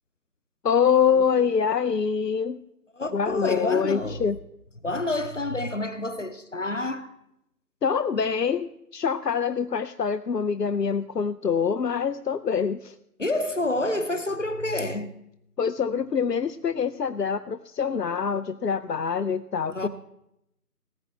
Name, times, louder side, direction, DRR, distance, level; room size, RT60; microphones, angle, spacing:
voice 1, 0.6-2.6 3.1-4.4 7.8-12.9 15.6-19.9, left 6 dB, 80° left, 0.7 m, -25 dB
voice 2, 2.9-4.2 4.8-7.1 13.2-15.1 19.7-19.9, left 2 dB, 50° left, 0.9 m, -28 dB
18.5 x 7.5 x 4.5 m
figure-of-eight pair, 165°, 48 cm